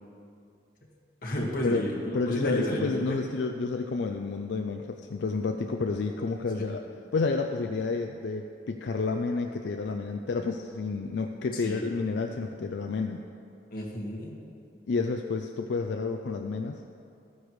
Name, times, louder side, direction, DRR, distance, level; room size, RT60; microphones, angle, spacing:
voice 1, 1.2-1.9 2.3-3.2 6.5-6.6 11.5-11.8 13.7-14.3, left 1 dB, 50° left, -3 dB, 1.7 m, -31 dB
voice 2, 2.1-13.2 14.9-16.8, left 4 dB, 80° left, 5 dB, 0.4 m, -30 dB
13.5 x 9.9 x 3.1 m, 2.5 s
head